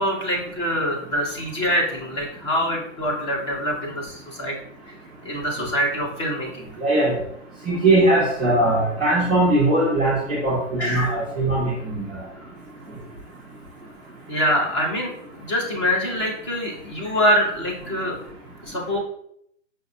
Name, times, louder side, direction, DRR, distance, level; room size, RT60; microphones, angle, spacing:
voice 1, 0.0-4.6 4.9-5.0 5.2-6.7 10.8-11.2 12.1-12.5 14.3-18.2 18.6-19.0, equal, 25° left, -1 dB, 0.7 m, -25 dB
voice 2, 6.8-7.1 7.7-11.7, right 2 dB, 10° right, -9 dB, 0.4 m, -20 dB
5.2 x 2.2 x 2.6 m, 0.71 s
hypercardioid pair, 155°, 37 cm